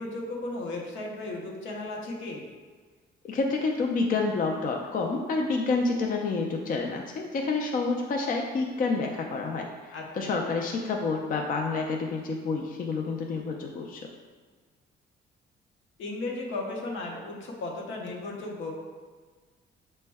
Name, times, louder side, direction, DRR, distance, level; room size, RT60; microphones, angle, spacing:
voice 1, 0.0-2.4 9.9-10.4 16.0-18.7, left 2 dB, 75° left, -1 dB, 0.8 m, -35 dB
voice 2, 3.2-14.1, left 3 dB, 45° left, 1 dB, 0.4 m, -29 dB
5.0 x 2.1 x 3.4 m, 1.4 s
cardioid pair, 90°, 20 cm